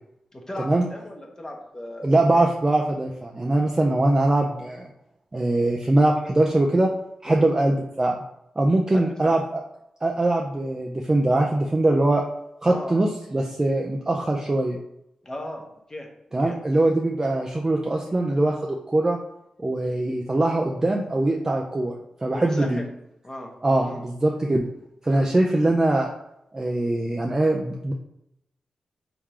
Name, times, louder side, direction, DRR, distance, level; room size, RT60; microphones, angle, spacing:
voice 1, 0.3-2.2 7.2-7.5 8.9-9.4 12.7-13.0 15.2-16.1 16.4-16.6 22.3-22.9 23.2-23.5 23.8-24.0 25.1-25.3, left 1 dB, 25° left, 0 dB, 1.1 m, -36 dB
voice 2, 2.0-4.9 5.3-6.9 7.2-8.2 8.6-9.6 10.0-12.2 12.6-14.8 16.3-19.2 19.6-21.9 22.2-22.8 23.6-24.6 25.0-26.1 26.5-27.9, right 2 dB, 25° right, 0 dB, 0.5 m, -22 dB
3.7 x 2.9 x 4.8 m, 0.80 s
cardioid pair, 65°, 2 cm